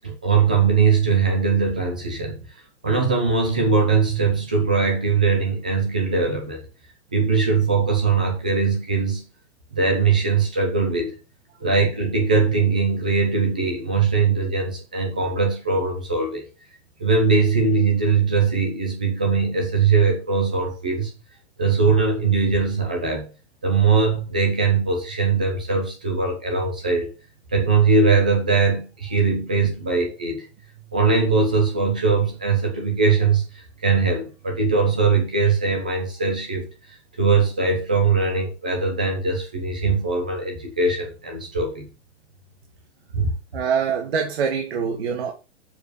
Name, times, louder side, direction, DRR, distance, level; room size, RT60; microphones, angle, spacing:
voice 1, 0.0-2.5 2.8-6.7 7.1-9.2 9.7-11.1 11.6-16.4 17.0-21.1 21.6-23.3 23.6-27.1 27.5-30.4 30.9-36.7 37.2-41.9 43.1-43.3, right 4 dB, 10° right, 0.4 m, -21 dB
voice 2, 43.5-45.3, right 6 dB, 60° right, 1.7 m, -24 dB
7.0 x 4.1 x 6.5 m
hypercardioid pair, 175°, 35 cm